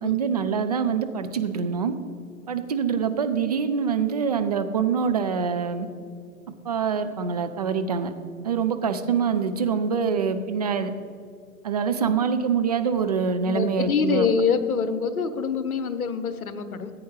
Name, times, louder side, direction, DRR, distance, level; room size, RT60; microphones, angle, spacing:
voice 1, 0.0-1.9 2.5-5.9 6.6-8.1 8.4-10.9 11.6-14.3, right 6 dB, 30° right, 7 dB, 0.4 m, -25 dB
voice 2, 13.5-16.9, left 6 dB, 70° left, 11 dB, 0.9 m, -25 dB
14.0 x 8.5 x 3.2 m, 2.3 s
figure-of-eight pair, 105°, 44 cm